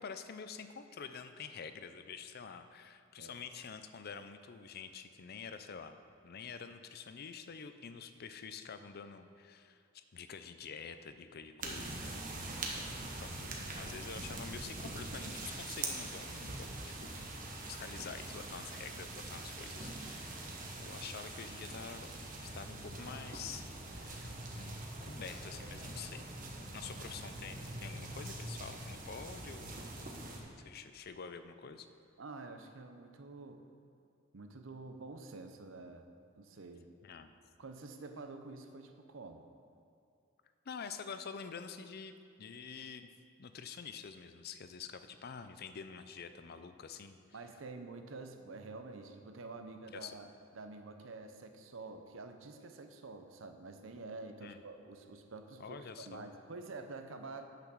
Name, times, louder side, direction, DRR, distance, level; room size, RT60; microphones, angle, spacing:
voice 1, 0.0-12.2 12.5-12.6 13.2-16.7 17.0-17.3 17.7-20.5 20.8-22.1 22.4-23.6 23.9-26.3 26.7-29.8 30.6-31.9 37.0-37.3 40.7-42.1 42.4-43.1 43.4-47.2 49.9-50.2 54.4-54.6 55.6-56.3, left 6 dB, 50° left, 10 dB, 0.5 m, -47 dB
sound 1, 11.6-30.4, right 2 dB, 45° right, 1.2 m, -43 dB
voice 2, 32.2-33.6 34.3-36.1 36.4-36.9 37.6-39.5 47.3-50.3 50.5-57.7, right 3 dB, 70° right, 7 dB, 0.7 m, -48 dB
8.9 x 5.9 x 6.2 m, 2.4 s
head